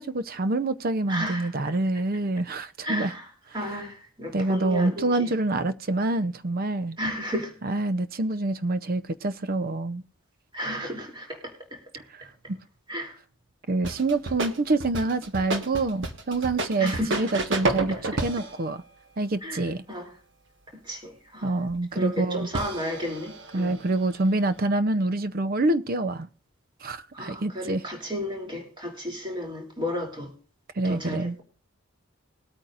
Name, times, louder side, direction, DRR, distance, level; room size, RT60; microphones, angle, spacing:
voice 1, 0.0-3.1 4.3-7.0 7.6-10.0 12.1-12.2 12.5-12.6 13.7-18.8 19.2-19.8 21.4-22.5 23.5-26.3 26.8-27.8 30.8-31.3, right 2 dB, 45° right, 0.6 m, -26 dB
voice 2, 1.1-1.7 2.8-5.3 7.0-7.5 10.5-12.0 12.9-13.2 16.8-17.2 19.4-20.1 20.7-21.5 21.9-23.8 27.1-30.3 30.8-31.4, equal, 25° right, 2.9 m, -33 dB
sound 1, 13.8-18.6 21.7-21.8 22.5-24.6, right 2 dB, 60° right, 1.4 m, -31 dB
20.5 x 8.9 x 2.5 m
head